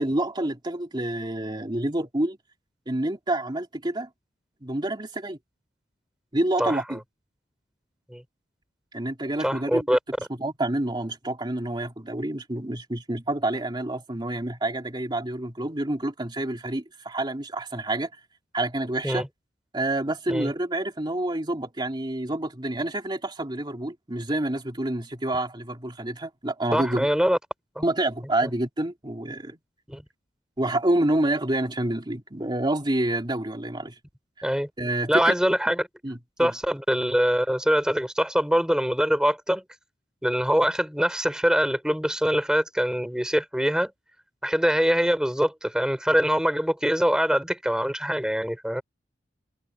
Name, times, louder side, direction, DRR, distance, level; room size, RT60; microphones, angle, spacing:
voice 1, 0.0-2.4 2.9-4.1 4.6-5.4 6.3-7.0 8.9-9.9 10.4-18.1 18.5-19.2 19.7-27.1 27.8-29.6 30.6-34.0 34.8-35.3 36.0-36.5, right 1 dB, 25° right, 2.6 m, -28 dB
voice 2, 9.4-10.0 19.0-19.3 20.3-20.5 26.7-27.4 27.8-27.9 29.9-30.0 34.4-34.7 35.1-35.9 36.4-39.6 40.2-43.9 44.4-48.8, equal, 5° right, 4.1 m, -23 dB
head